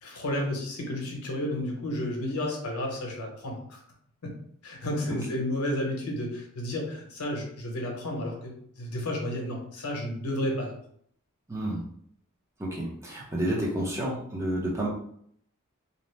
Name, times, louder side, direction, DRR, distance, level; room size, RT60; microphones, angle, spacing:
voice 1, 0.0-3.8 4.2-4.3 4.6-10.7, left 1 dB, 75° left, 0 dB, 0.8 m, -32 dB
voice 2, 11.5-11.8 12.6-14.9, right 1 dB, 15° right, -4 dB, 0.6 m, -30 dB
2.7 x 2.0 x 3.1 m, 0.65 s
head